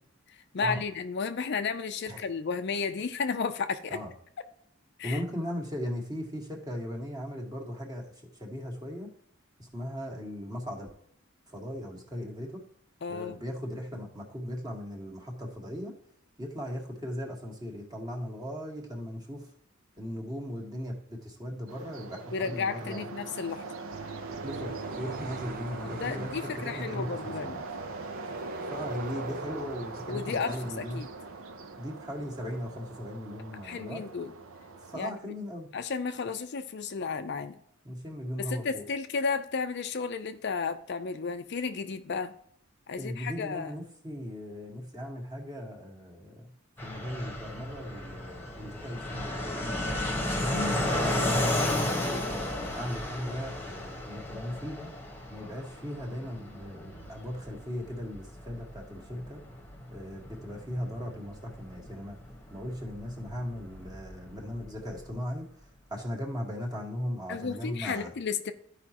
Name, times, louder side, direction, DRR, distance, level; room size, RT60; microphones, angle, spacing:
voice 1, 0.5-4.0 5.0-5.2 13.0-13.4 22.3-23.7 25.8-27.6 30.1-31.1 33.6-34.3 34.9-35.3 35.7-37.5 38.4-42.3 42.9-43.7 50.5-50.8 67.3-68.5, left 5 dB, 55° left, 9 dB, 0.5 m, -33 dB
voice 2, 5.0-8.1 8.4-9.1 9.6-10.9 11.5-12.6 13.1-15.9 16.4-19.5 20.0-23.1 24.4-27.5 28.7-31.0 31.8-34.0 34.8-35.7 37.8-38.8 42.1-42.2 43.0-46.5 46.8-50.0 51.0-54.9 55.3-59.4 59.9-62.2 62.5-65.5 65.9-68.1, equal, 20° right, 0 dB, 1.7 m, -38 dB
sound 1, 21.7-35.0, right 3 dB, 90° right, 0.8 m, -41 dB
sound 2, 23.9-32.3, right 3 dB, 45° right, 0.7 m, -46 dB
Fixed-wing aircraft airplane, 46.8-65.1, left 1 dB, 10° left, 1.3 m, -34 dB
13.5 x 5.0 x 2.9 m, 0.67 s
head